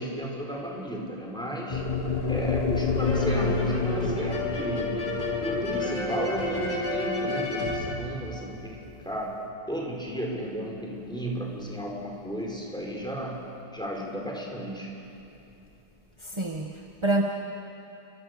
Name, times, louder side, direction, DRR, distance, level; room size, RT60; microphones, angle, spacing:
voice 1, 0.0-1.8 2.3-4.9 5.4-8.8 9.0-9.3 9.7-13.4 13.7-14.9, equal, ahead, -2 dB, 4.6 m, -34 dB
sound 1, 1.7-9.9, left 4 dB, 25° left, 0.9 m, -30 dB
sound 2, 3.0-8.8, left 2 dB, 55° left, 5.2 m, -31 dB
voice 2, 16.2-17.2, right 2 dB, 15° right, 0 dB, 1.1 m, -27 dB
30.0 x 25.0 x 6.8 m, 2.8 s
omnidirectional pair, 2.3 m